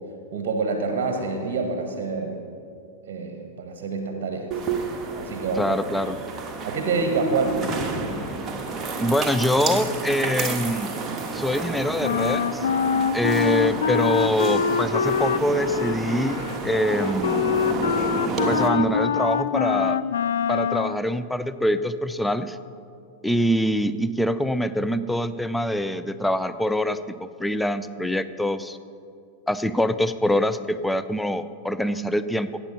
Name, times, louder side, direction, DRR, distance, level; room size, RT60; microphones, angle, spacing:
voice 1, 0.3-2.4 3.1-4.6 5.2-5.7 6.6-7.7, right 4 dB, 45° right, 5 dB, 1.3 m, -27 dB
sound 1, 4.5-18.7, right 4 dB, 20° right, 1.3 m, -30 dB
voice 2, 5.6-6.2 9.0-10.9 11.3-12.7 13.1-17.4 18.5-20.0 20.5-22.6 23.2-28.8 29.5-32.6, equal, 5° left, 12 dB, 0.4 m, -24 dB
Wind instrument woodwind instrument, 12.0-21.0, left 7 dB, 65° left, 0.4 m, -24 dB
14.0 x 8.7 x 5.6 m, 2.4 s
figure-of-eight pair, 90°, 0 cm